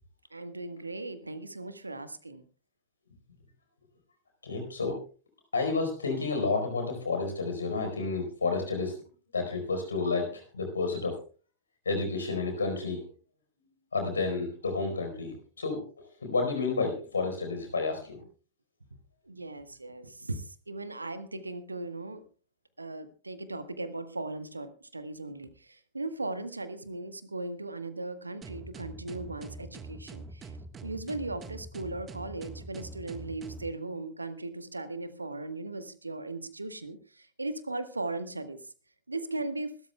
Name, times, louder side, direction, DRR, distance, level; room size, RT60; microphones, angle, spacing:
voice 1, 0.3-2.4 19.3-22.2 22.8-25.5 25.9-30.5 30.8-38.6 39.1-39.7, right 2 dB, 80° right, 12 dB, 1.3 m, -38 dB
voice 2, 4.4-5.0 5.5-9.0 9.3-11.2 11.8-13.0 13.9-15.8 16.2-18.2, left 3 dB, 75° left, 5 dB, 4.5 m, -30 dB
sound 1, 28.4-33.7, right 3 dB, 25° right, 1.4 m, -44 dB
25.5 x 13.0 x 2.3 m, 0.38 s
figure-of-eight pair, 90°, 0 cm